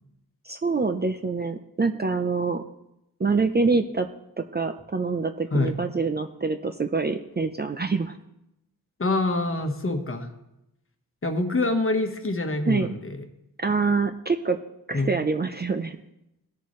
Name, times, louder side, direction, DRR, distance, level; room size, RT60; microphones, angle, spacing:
voice 1, 0.5-2.6 3.2-4.1 4.4-8.2 12.7-13.0 13.6-14.6 14.9-16.0, right 4 dB, 25° right, 7 dB, 0.5 m, -25 dB
voice 2, 9.0-10.3 11.2-13.2 14.9-15.1, left 2 dB, 35° left, 5 dB, 1.2 m, -25 dB
18.5 x 6.9 x 3.1 m, 0.86 s
wide cardioid pair, 115°, 38 cm